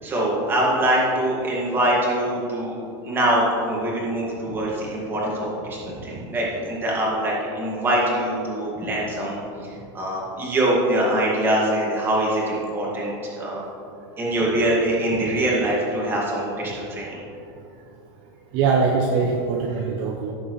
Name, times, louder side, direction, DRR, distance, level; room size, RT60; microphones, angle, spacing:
voice 1, 0.0-2.8 3.0-9.4 9.9-13.6 14.2-17.2, right 1 dB, 15° right, -4 dB, 2.1 m, -23 dB
voice 2, 18.5-20.3, right 4 dB, 40° right, 1 dB, 0.8 m, -22 dB
16.5 x 7.1 x 3.2 m, 2.7 s
supercardioid pair, 160°, 14 cm